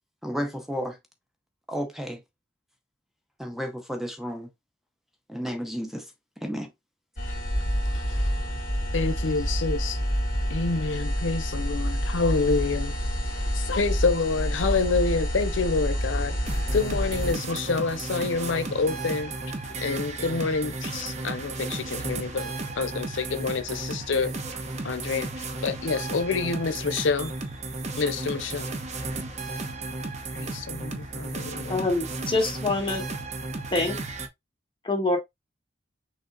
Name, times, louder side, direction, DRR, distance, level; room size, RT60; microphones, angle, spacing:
voice 1, 0.2-1.0 1.7-2.2 3.4-4.5 5.3-6.0 6.4-6.7, equal, ahead, 0.6 m, -32 dB
sound 1, 7.2-17.3, equal, 45° left, 2.3 m, -28 dB
voice 2, 7.9-8.5 8.9-10.0 10.5-16.3 16.7-24.6 24.8-27.3 28.0-28.7 30.3-31.7, left 4 dB, 90° left, 0.7 m, -28 dB
sound 2, 16.5-34.3, right 3 dB, 40° right, 0.7 m, -34 dB
voice 3, 31.7-33.0 33.7-34.0 34.8-35.2, left 2 dB, 25° left, 1.4 m, -25 dB
6.1 x 2.1 x 3.8 m
head